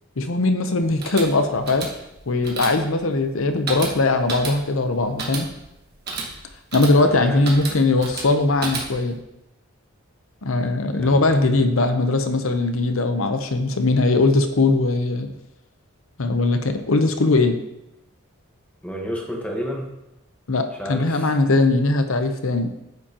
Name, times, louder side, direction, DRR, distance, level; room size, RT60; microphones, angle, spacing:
voice 1, 0.2-1.9 2.3-5.5 6.7-9.2 10.4-15.3 16.2-17.6 20.5-22.7, left 2 dB, 70° left, 8 dB, 0.8 m, -20 dB
sound 1, 0.8-9.2, right 3 dB, 50° right, 1.5 m, -33 dB
voice 2, 7.0-7.4 11.0-11.2 18.8-19.9 20.8-21.3, equal, 5° left, 0 dB, 1.2 m, -30 dB
9.2 x 7.4 x 2.9 m, 0.88 s
head